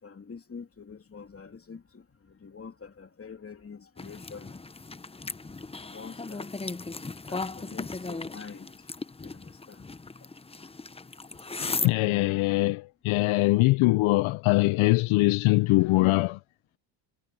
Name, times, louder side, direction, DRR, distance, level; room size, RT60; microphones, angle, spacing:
voice 1, 0.0-4.6 5.8-6.7 7.3-8.7 9.2-9.9 12.0-12.3, left 5 dB, 25° left, 3.1 m, -45 dB
sound 1, 4.0-11.9, left 3 dB, 10° left, 0.8 m, -37 dB
voice 2, 11.6-16.4, left 20 dB, 75° left, 0.6 m, -23 dB
cardioid pair, 90°, 49 cm